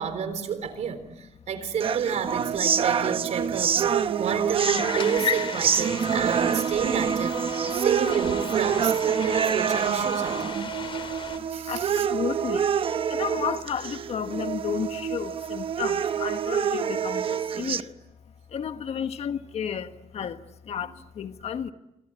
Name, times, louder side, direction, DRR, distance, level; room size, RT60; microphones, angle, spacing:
voice 1, 0.0-10.7 11.5-12.1 17.6-17.9, right 7 dB, 85° right, 4.1 m, -30 dB
sound 1, 1.8-17.8, right 8 dB, 55° right, 0.9 m, -26 dB
sound 2, 4.6-11.4, left 6 dB, 50° left, 3.5 m, -35 dB
voice 2, 11.4-12.7 13.1-18.0 18.5-21.7, left 8 dB, 70° left, 1.6 m, -32 dB
26.0 x 25.5 x 8.9 m
wide cardioid pair, 160°, 11 cm